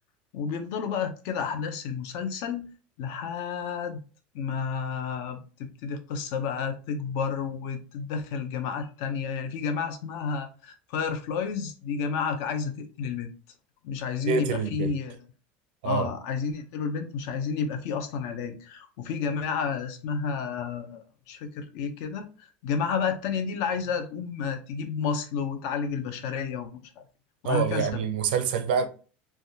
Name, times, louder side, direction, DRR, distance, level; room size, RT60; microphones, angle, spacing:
voice 1, 0.3-2.7 3.0-4.0 4.3-13.3 13.8-15.2 15.8-27.0 27.4-28.0, left 6 dB, 55° left, 0.6 m, -31 dB
voice 2, 14.3-14.9 15.8-16.1 27.4-28.9, right 6 dB, 90° right, 0.5 m, -26 dB
3.4 x 2.2 x 2.7 m
cardioid pair, 165°, 5 cm